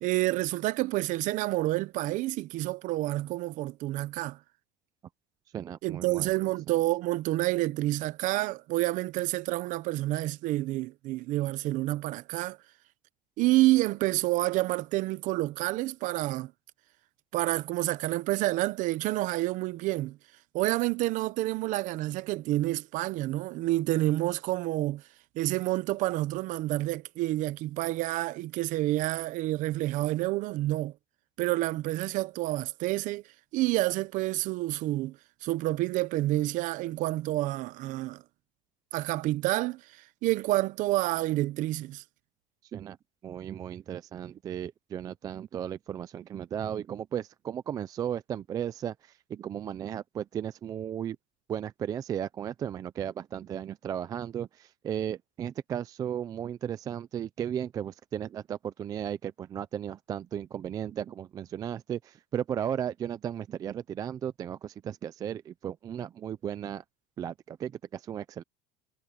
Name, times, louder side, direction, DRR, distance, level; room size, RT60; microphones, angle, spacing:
voice 1, 0.0-4.4 5.8-12.6 13.4-16.5 17.3-20.2 20.5-25.0 25.3-30.9 31.4-33.2 33.5-35.2 35.4-38.2 38.9-39.8 40.2-42.0, right 17 dB, 40° right, 0.7 m, -28 dB
voice 2, 5.5-6.3 42.7-43.0 43.2-48.9 49.3-51.2 51.5-66.8 67.2-68.4, right 9 dB, 20° right, 0.3 m, -35 dB
cardioid pair, 170°, 19 cm